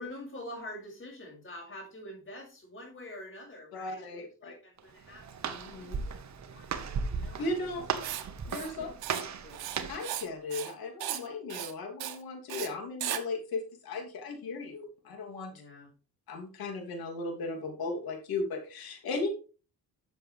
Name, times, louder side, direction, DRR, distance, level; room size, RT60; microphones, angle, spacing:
voice 1, 0.0-7.7 8.8-9.7 15.5-15.9, left 1 dB, 35° left, -5 dB, 5.1 m, -46 dB
voice 2, 3.7-4.5 5.5-6.0 7.4-7.9 8.5-8.9 9.9-15.5 16.3-19.3, left 3 dB, 80° left, 3 dB, 2.9 m, -36 dB
Walk footsteps, 4.8-10.2, right 6 dB, 50° right, 1.3 m, -37 dB
Writing, 8.0-8.2 8.5-8.7 9.0-9.2 9.5-10.3 10.5-10.7 11.0-11.2 11.5-11.7 12.0-12.2 12.5-12.7 13.0-13.2, right 12 dB, 85° right, 1.2 m, -36 dB
11.5 x 7.0 x 3.3 m, 0.35 s
cardioid pair, 115°, 36 cm